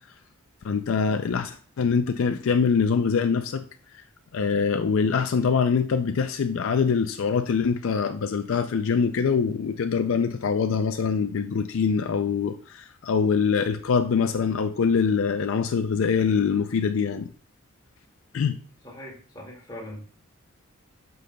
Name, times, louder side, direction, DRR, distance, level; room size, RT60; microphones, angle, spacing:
voice 1, 0.6-3.6 4.3-17.3 18.3-18.6, left 5 dB, 65° left, 0.4 m, -24 dB
voice 2, 18.8-20.2, left 1 dB, 20° left, 2.0 m, -41 dB
11.5 x 5.5 x 2.2 m
head